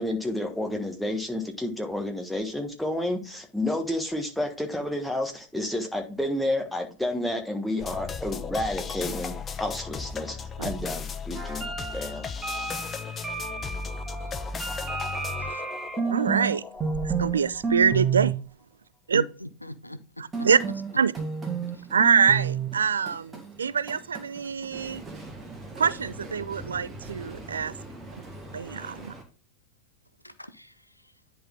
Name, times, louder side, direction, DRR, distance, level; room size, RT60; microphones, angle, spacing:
voice 1, 0.0-12.3, left 1 dB, ahead, 1.5 m, -30 dB
sound 1, 7.8-18.0, left 5 dB, 20° left, 0.6 m, -36 dB
sound 2, 11.3-16.5 16.8-17.4 17.6-18.3 20.3-29.2, right 5 dB, 15° right, 1.9 m, -32 dB
sound 3, 15.9-16.1 16.7-18.5 19.2-19.3 20.1-20.2 21.1-21.2 21.5-21.6 22.0-22.3 22.8-22.9 23.3-23.5 24.4-25.4, right 6 dB, 45° right, 1.3 m, -43 dB
voice 2, 16.1-16.6 17.0-18.4 19.1-19.2 20.4-20.6 21.0-21.1 21.9-25.0 25.8-27.7 28.5-29.1, right 6 dB, 70° right, 0.3 m, -24 dB
voice 3, 19.1-20.5 21.7-21.9 30.2-31.2, equal, 85° left, 0.6 m, -40 dB
10.5 x 4.0 x 3.8 m
figure-of-eight pair, 90°, 0 cm